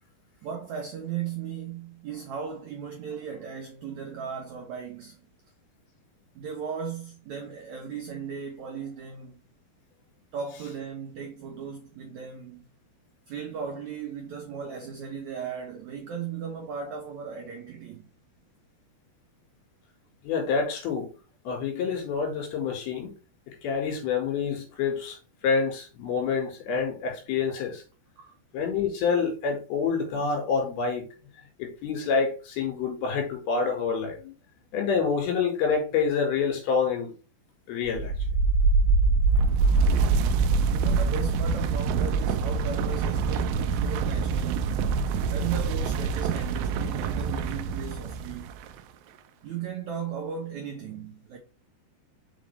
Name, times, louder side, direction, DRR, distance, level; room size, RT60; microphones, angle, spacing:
voice 1, 0.4-5.2 6.3-9.4 10.3-12.7 13.3-18.0 28.2-28.3 40.6-45.0 45.3-48.5 49.4-51.4, right 7 dB, 75° right, 1.7 m, -36 dB
voice 2, 20.2-21.1 21.5-23.1 23.5-25.2 25.4-27.8 28.5-31.1 31.6-34.3 34.7-37.1 37.7-38.1, left 5 dB, 70° left, 3.7 m, -27 dB
sound 1, 37.9-48.7, right 4 dB, 90° right, 2.1 m, -25 dB
5.8 x 5.0 x 3.2 m
omnidirectional pair, 4.7 m